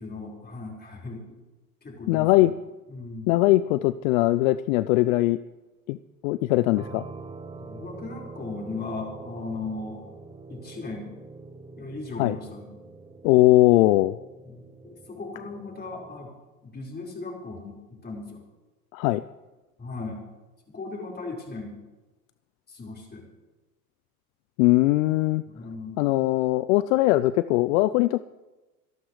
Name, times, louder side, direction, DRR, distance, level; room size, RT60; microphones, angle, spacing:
voice 1, 0.0-1.4 1.8-2.5 2.9-3.3 7.6-10.1 10.5-11.1 11.8-12.7 14.4-16.3 16.6-18.4 19.8-20.2 20.7-21.7 22.7-23.2 25.5-26.0, left 3 dB, 20° left, -1 dB, 4.9 m, -37 dB
voice 2, 2.1-2.5 3.3-5.4 5.9-6.0 6.2-7.1 12.2-12.4 13.2-14.2 18.9-19.2 24.6-25.4 26.0-28.2, left 17 dB, 65° left, 15 dB, 0.6 m, -20 dB
sound 1, 6.8-16.3, right 3 dB, 10° right, 0.9 m, -44 dB
27.0 x 11.5 x 3.2 m, 1.1 s
hypercardioid pair, 85°, 44 cm